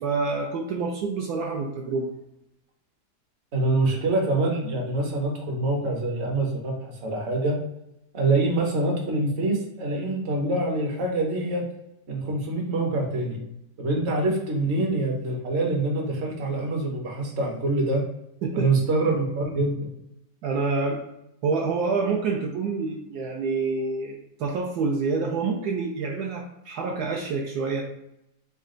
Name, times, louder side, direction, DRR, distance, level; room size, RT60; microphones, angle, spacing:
voice 1, 0.0-2.1 18.4-18.7 20.4-21.0 21.4-27.8, right 4 dB, 75° right, -1 dB, 1.1 m, -27 dB
voice 2, 3.5-7.6 8.1-11.6 12.1-13.4 13.8-18.0 18.5-19.8, right 2 dB, 50° right, -1 dB, 1.1 m, -25 dB
4.1 x 2.2 x 3.7 m, 0.84 s
omnidirectional pair, 1.8 m